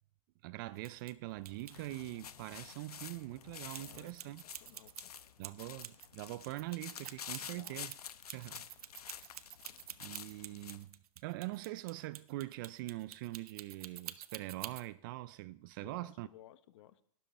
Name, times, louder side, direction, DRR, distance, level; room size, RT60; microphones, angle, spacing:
voice 1, 0.4-4.4 5.4-7.9 8.3-8.7 10.0-16.3, right 18 dB, 35° right, 0.4 m, -43 dB
sound 1, 0.8-1.1 1.4-1.7 3.7-6.1 6.4-14.9, right 10 dB, 75° right, 0.7 m, -48 dB
sound 2, 1.4-10.9, left 8 dB, 90° left, 0.8 m, -50 dB
voice 2, 3.7-5.5 7.3-7.8 15.8-17.0, left 13 dB, 50° left, 0.8 m, -59 dB
12.0 x 10.5 x 4.3 m
hypercardioid pair, 140°, 19 cm